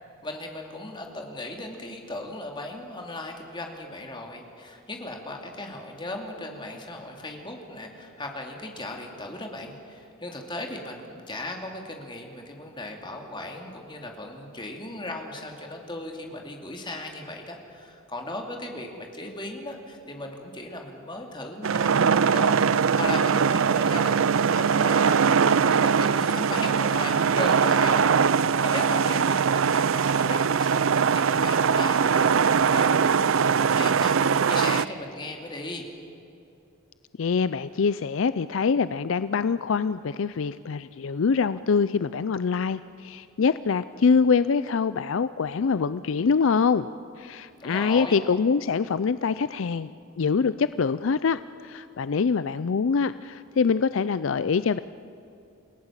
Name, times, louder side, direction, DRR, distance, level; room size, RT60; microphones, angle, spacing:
voice 1, 0.2-25.3 25.7-34.1 34.5-35.8 47.6-48.1, left 2 dB, 20° left, 2 dB, 2.6 m, -37 dB
sound 1, 21.6-34.8, right 6 dB, 70° right, 0.5 m, -21 dB
voice 2, 37.2-46.9 47.2-49.9 50.2-54.8, left 5 dB, 65° left, 14 dB, 0.4 m, -24 dB
28.5 x 17.5 x 7.4 m, 2.7 s
head